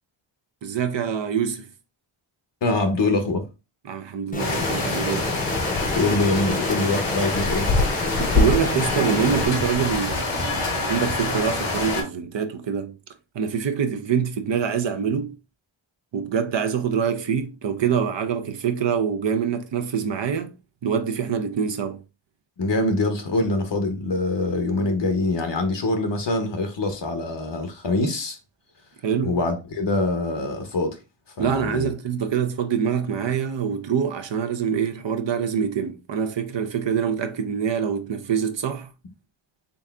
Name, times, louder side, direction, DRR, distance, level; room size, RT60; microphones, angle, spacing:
voice 1, 0.6-1.7 3.8-5.3 8.2-13.0 13.3-15.4 16.1-20.5 20.8-22.0 29.0-29.4 31.4-38.9, right 7 dB, 60° right, 0.8 m, -25 dB
voice 2, 2.6-3.5 5.9-7.7 22.6-28.4 29.2-31.0 31.4-31.9, left 2 dB, 60° left, 0.9 m, -24 dB
sound 1, 4.3-9.5, left 2 dB, 15° left, 0.7 m, -29 dB
sound 2, 4.4-12.0, left 3 dB, 90° left, 1.9 m, -25 dB
4.0 x 3.6 x 2.3 m
cardioid pair, 60°, 50 cm